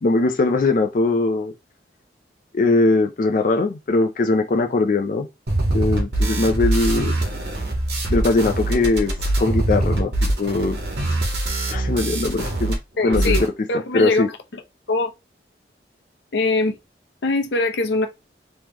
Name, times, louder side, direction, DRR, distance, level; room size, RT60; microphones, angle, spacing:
voice 1, 0.0-1.5 2.5-5.3 5.7-7.1 8.1-10.1 10.4-10.8 11.7-12.8 13.0-13.5 13.9-14.3, left 3 dB, 45° left, 0.4 m, -20 dB
sound 1, 5.5-12.7 13.0-13.5, right 1 dB, 75° right, 1.4 m, -23 dB
voice 2, 13.0-13.4 13.7-14.2 14.5-14.6 14.9-15.1 16.3-16.8 17.2-18.1, left 2 dB, 85° left, 0.7 m, -21 dB
3.6 x 3.1 x 2.9 m
head